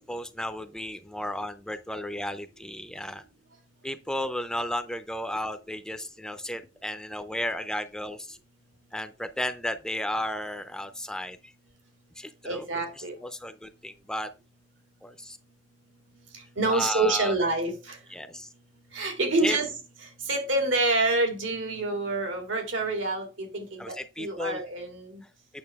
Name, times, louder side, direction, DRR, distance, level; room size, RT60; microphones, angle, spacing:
voice 1, 0.1-3.2 3.8-8.4 8.9-11.5 12.2-12.7 13.2-14.3 15.0-15.4 16.7-17.3 18.1-18.5 19.4-19.6 23.8-24.6, left 1 dB, 5° left, 10 dB, 0.4 m, -34 dB
voice 2, 12.4-13.1 16.6-18.0 18.9-19.7 20.3-25.2, right 2 dB, 80° right, 3 dB, 2.5 m, -27 dB
8.7 x 6.4 x 3.5 m, 0.30 s
head